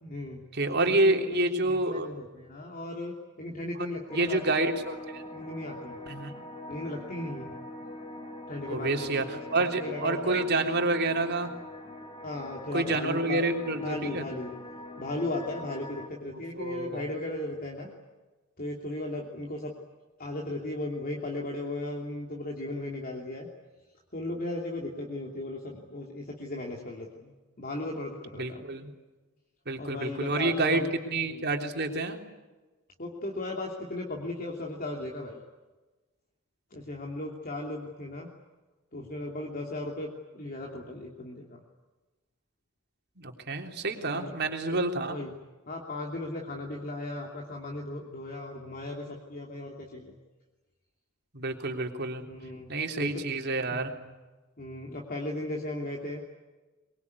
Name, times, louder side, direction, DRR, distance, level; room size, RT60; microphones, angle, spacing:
voice 1, 0.0-0.4 1.0-4.4 5.3-6.0 6.7-7.5 8.5-10.7 12.2-13.4 13.8-14.5 15.0-17.9 18.6-19.7 20.2-23.5 24.1-28.6 29.8-30.9 31.3-31.4 33.0-35.4 36.7-38.3 38.9-41.6 44.1-44.3 44.7-44.8 45.1-45.4 45.7-50.1 52.3-53.1 53.7-54.1 54.6-56.2, left 2 dB, 40° left, 0 dB, 2.9 m, -36 dB
voice 2, 0.5-2.1 4.1-5.2 6.1-6.4 8.7-11.5 12.7-14.2 16.6-17.1 28.4-28.9 29.7-32.2 43.2-45.2 51.3-52.2 52.7-53.9, right 2 dB, 50° right, 3 dB, 3.4 m, -28 dB
sound 1, 4.1-16.1, left 1 dB, 25° left, 2.9 m, -43 dB
23.5 x 23.0 x 9.7 m, 1.2 s
head